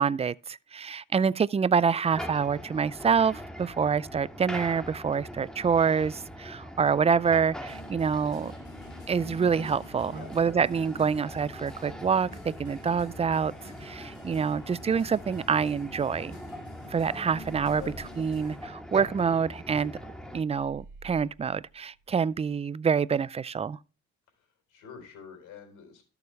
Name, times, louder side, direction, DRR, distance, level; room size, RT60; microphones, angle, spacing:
voice 1, 0.0-8.5 9.1-13.5 13.8-16.3 16.9-17.8 18.2-19.9 20.3-23.8, right 6 dB, 20° right, 0.4 m, -26 dB
sound 1, 2.1-20.4, equal, ahead, 1.9 m, -42 dB
sound 2, 7.7-18.7, left 1 dB, 40° left, 6.0 m, -48 dB
sound 3, 20.5-22.5, right 3 dB, 90° right, 1.4 m, -51 dB
voice 2, 24.4-26.0, left 8 dB, 85° left, 4.0 m, -46 dB
13.0 x 7.0 x 3.2 m
cardioid pair, 90°, 30 cm